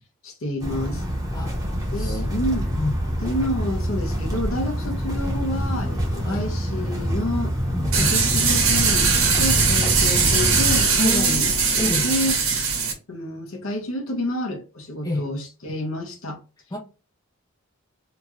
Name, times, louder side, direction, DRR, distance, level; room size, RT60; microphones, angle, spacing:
voice 1, 0.2-1.0 1.8-2.7 3.2-7.6 7.9-12.4 13.1-16.4, left 1 dB, 70° left, 0.9 m, -29 dB
sound 1, 0.6-10.8, equal, 15° right, 0.8 m, -26 dB
voice 2, 2.7-3.2 6.2-6.4 7.7-8.1 11.0-11.5 11.7-12.1 15.0-15.3 16.7-16.8, left 1 dB, 15° left, 0.5 m, -28 dB
sound 2, 7.9-12.9, right 5 dB, 75° right, 1.0 m, -20 dB
2.9 x 2.4 x 3.0 m
head